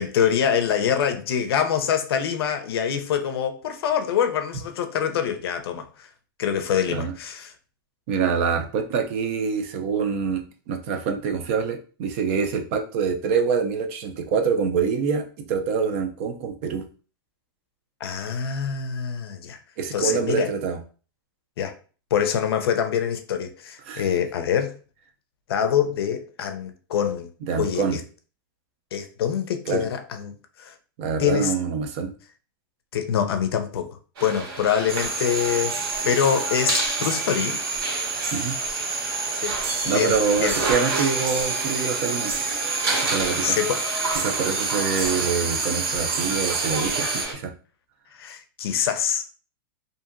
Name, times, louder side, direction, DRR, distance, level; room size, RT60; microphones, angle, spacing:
voice 1, 0.0-6.1 6.4-7.5 18.0-19.6 19.9-20.5 21.6-21.7 22.1-24.7 25.5-27.3 27.6-28.0 28.9-30.3 30.6-30.7 31.2-31.5 32.9-35.8 36.0-37.6 39.4-39.6 39.8-40.6 43.4-43.8 48.1-49.2, left 8 dB, 85° left, 0.5 m, -25 dB
voice 2, 8.1-16.9 19.8-20.8 23.9-24.0 27.4-28.0 29.7-29.9 31.0-32.1 38.3-38.6 39.9-42.3 43.0-43.6 44.2-47.5, right 6 dB, 35° right, 0.3 m, -25 dB
sound 1, 34.2-47.3, right 2 dB, 85° right, 1.2 m, -30 dB
sound 2, 34.9-47.2, right 4 dB, 70° right, 0.7 m, -29 dB
2.8 x 2.6 x 2.5 m
supercardioid pair, 175°, 12 cm